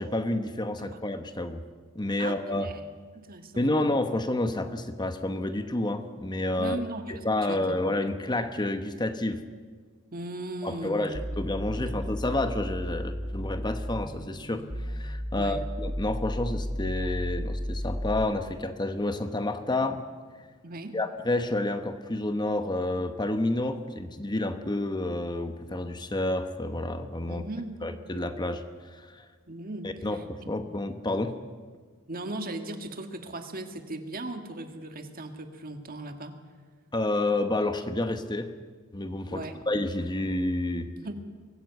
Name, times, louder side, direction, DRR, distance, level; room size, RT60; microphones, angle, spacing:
voice 1, 0.0-1.6 1.9-2.7 3.6-6.8 7.1-9.4 10.6-20.1 20.4-20.5 20.9-27.4 27.8-29.3 29.8-31.3 36.9-38.5 38.9-40.9, left 2 dB, 20° left, 8 dB, 1.0 m, -29 dB
voice 2, 2.2-2.8 3.1-3.8 6.6-7.1 7.5-7.8 10.1-11.4 11.7-12.0 15.3-15.7 20.6-20.9 27.3-27.8 29.5-30.5 32.1-36.4 39.3-39.6 41.0-41.1, right 2 dB, 40° right, 7 dB, 1.7 m, -38 dB
sound 1, 11.1-18.2, equal, 10° right, 1.3 m, -33 dB
23.5 x 15.5 x 8.1 m, 1.5 s
head